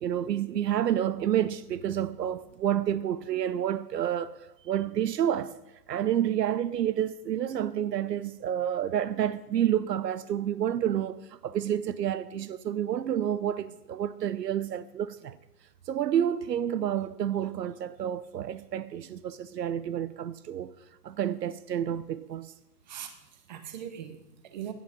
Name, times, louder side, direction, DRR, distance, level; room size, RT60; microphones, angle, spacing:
voice 1, 0.0-4.4 4.6-5.5 5.9-15.4 15.9-20.7 21.0-22.5, right 10 dB, 75° right, 0.9 m, -29 dB
voice 2, 22.9-24.7, right 9 dB, 25° right, 1.2 m, -41 dB
16.5 x 11.0 x 5.2 m
hypercardioid pair, 175°, 49 cm